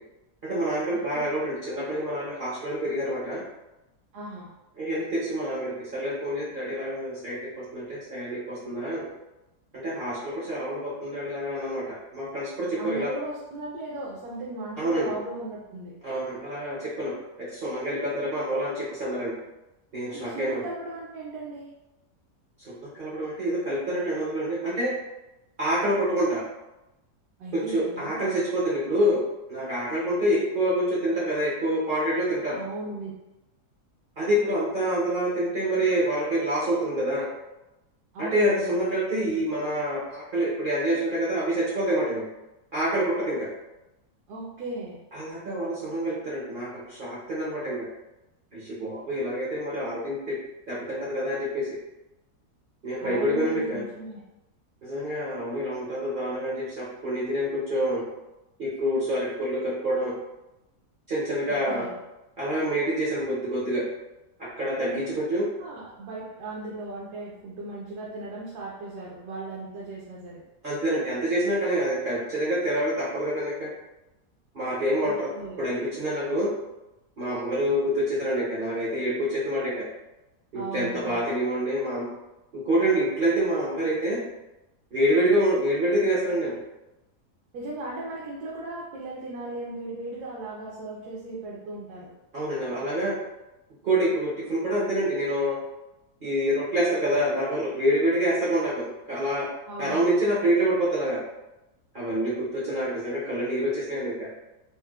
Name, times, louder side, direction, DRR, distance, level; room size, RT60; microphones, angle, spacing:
voice 1, 0.4-3.4 4.8-9.1 9.7-13.1 14.8-15.1 16.0-17.1 17.4-19.3 19.9-20.6 22.6-24.9 25.6-26.4 27.5-29.2 29.5-32.6 34.2-37.3 38.2-42.2 42.7-43.5 45.1-47.9 48.5-50.4 50.7-51.8 52.8-53.8 54.8-58.0 58.6-60.1 61.1-61.9 62.4-63.8 64.4-65.4 70.6-73.7 74.5-75.3 75.6-76.5 77.2-79.8 80.5-82.1 82.5-84.2 84.9-86.6 92.3-93.1 93.8-95.6 96.2-99.5 99.8-101.2 101.9-104.3, right 1 dB, 50° right, -8 dB, 0.6 m, -27 dB
voice 2, 4.1-4.5 12.8-15.9 20.1-21.7 27.4-28.2 32.5-33.1 38.1-38.8 44.3-45.0 53.0-54.2 61.5-61.9 64.8-65.2 65.6-70.4 75.0-75.6 80.5-81.2 87.5-92.1 99.7-100.0, right 2 dB, 75° right, -6 dB, 1.2 m, -37 dB
4.4 x 2.0 x 2.3 m, 0.99 s
omnidirectional pair, 1.7 m